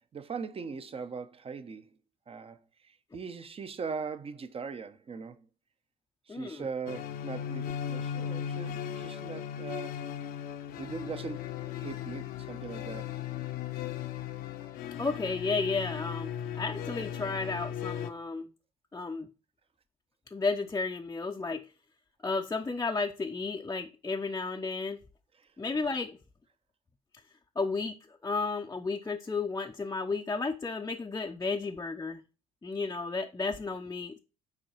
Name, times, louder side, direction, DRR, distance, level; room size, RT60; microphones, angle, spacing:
voice 1, 0.1-1.9 2.3-5.5 6.3-10.1 10.8-13.1 25.4-25.5, right 5 dB, 30° right, 0.9 m, -40 dB
voice 2, 6.3-6.6 15.0-18.5 18.9-19.3 20.3-21.7 22.2-25.0 25.6-26.2 27.6-32.2 32.6-34.2, left 4 dB, 15° left, 0.7 m, -33 dB
sound 1, 6.9-18.1, left 9 dB, 60° left, 0.8 m, -37 dB
7.4 x 4.7 x 4.5 m
figure-of-eight pair, 50°, 18 cm